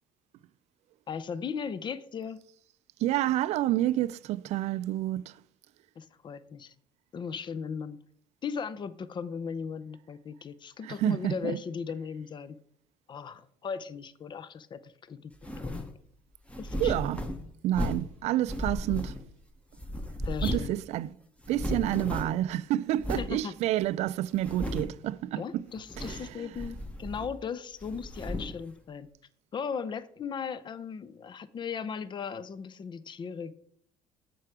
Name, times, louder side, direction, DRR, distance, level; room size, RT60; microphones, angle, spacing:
voice 1, 1.1-2.4 6.0-6.7 7.1-8.0 8.4-12.6 13.1-15.9 16.6-16.9 20.3-20.7 23.1-23.5 25.4-29.1 29.5-33.5, left 6 dB, 40° left, 0.6 m, -37 dB
voice 2, 3.0-5.4 10.8-11.6 16.8-17.2 17.6-19.2 20.4-21.1 21.5-25.6 26.0-26.5, right 14 dB, 65° right, 0.4 m, -29 dB
sound 1, 15.4-15.9 16.5-18.1 18.5-19.4 19.8-20.8 21.0-21.1 21.4-22.5 23.0-23.3 23.8-23.9 24.4-25.0 25.8-26.3 26.5-27.4 27.8-28.6, left 1 dB, 10° left, 1.1 m, -35 dB
7.5 x 4.7 x 4.9 m
supercardioid pair, 70°, 12 cm